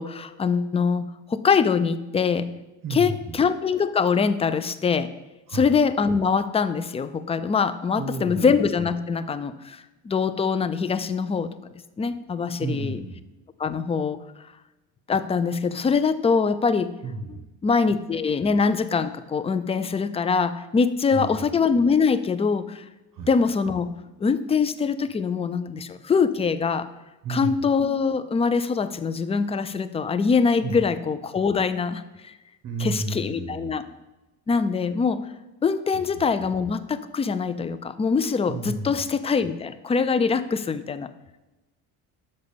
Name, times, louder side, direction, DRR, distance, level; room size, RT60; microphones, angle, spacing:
voice 1, 0.0-2.5 2.9-5.1 5.5-11.5 12.0-13.0 13.6-14.2 15.1-16.9 17.6-22.8 23.3-23.9 24.2-26.9 27.3-32.3 32.8-33.8 34.5-35.2 35.6-41.1, left 5 dB, 15° left, 13 dB, 0.4 m, -23 dB
voice 2, 2.8-3.4 5.5-5.7 8.0-8.5 12.6-13.2 17.0-17.4 21.1-21.5 23.1-23.3 27.2-27.5 30.6-30.7 32.6-33.8 35.9-36.0 38.5-39.0, right 3 dB, 55° right, 3 dB, 1.3 m, -32 dB
6.6 x 5.4 x 6.9 m, 1.1 s
supercardioid pair, 100°, 39 cm